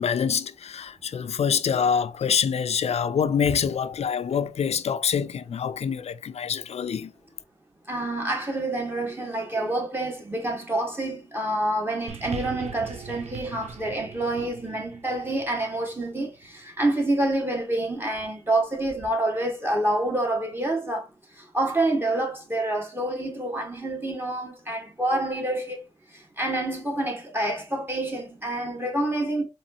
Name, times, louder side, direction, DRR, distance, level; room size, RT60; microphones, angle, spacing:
voice 1, 0.0-7.1, left 7 dB, 75° left, 0.4 m, -25 dB
voice 2, 7.9-21.1 21.5-25.8 26.4-29.4, right 1 dB, 20° right, 1.7 m, -27 dB
sound 1, 12.1-16.6 17.5-17.6, right 7 dB, 90° right, 0.4 m, -41 dB
4.1 x 2.9 x 2.8 m
cardioid pair, 45°, 11 cm